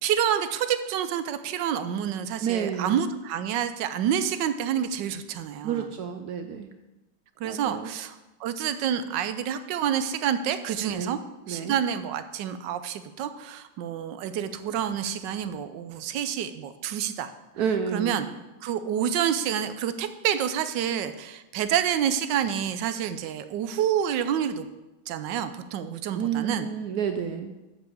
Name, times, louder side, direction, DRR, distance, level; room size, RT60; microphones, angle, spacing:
voice 1, 0.0-5.9 7.4-8.1 8.4-11.2 11.5-17.3 17.9-18.3 18.6-24.7 25.1-26.7, right 9 dB, 85° right, 11 dB, 1.3 m, -28 dB
voice 2, 2.4-3.0 5.6-6.7 7.4-7.9 10.9-11.1 11.5-11.8 17.6-18.3 26.1-27.5, right 7 dB, 70° right, 7 dB, 1.0 m, -30 dB
7.7 x 5.7 x 7.0 m, 1.1 s
omnidirectional pair, 1.9 m